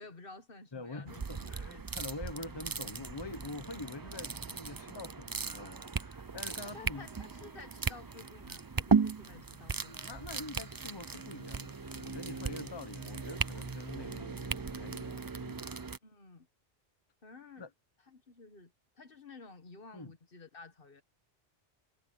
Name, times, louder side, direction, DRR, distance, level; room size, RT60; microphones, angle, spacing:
voice 1, 0.0-1.8 6.6-10.2 16.0-16.5 17.2-17.7 18.1-21.0, left 3 dB, 50° left, 1.6 m, -52 dB
voice 2, 0.7-7.1 9.8-15.7 17.6-17.7 19.9-20.1, left 3 dB, 25° left, 1.0 m, -45 dB
sound 1, 1.1-16.0, right 5 dB, 30° right, 0.4 m, -37 dB
sound 2, 3.9-15.9, right 1 dB, 85° right, 6.2 m, -66 dB
sound 3, 6.1-13.9, right 1 dB, 60° right, 8.5 m, -69 dB
omnidirectional pair, 1.2 m